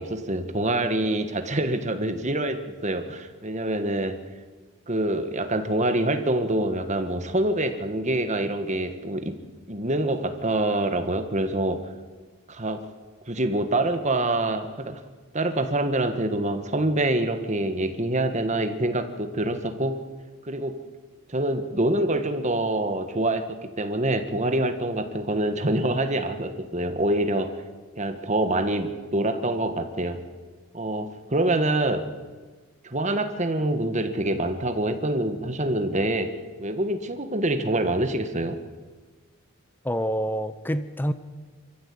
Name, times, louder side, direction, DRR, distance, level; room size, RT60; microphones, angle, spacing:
voice 1, 0.0-4.2 4.9-9.4 9.7-11.8 12.5-12.8 13.3-15.0 15.3-20.0 20.4-20.8 21.3-27.6 28.0-30.2 30.7-32.1 32.8-36.3 36.6-38.6, right 1 dB, 35° right, 8 dB, 1.5 m, -26 dB
voice 2, 39.8-41.1, equal, 10° left, 12 dB, 0.7 m, -27 dB
25.0 x 14.5 x 8.6 m, 1.4 s
head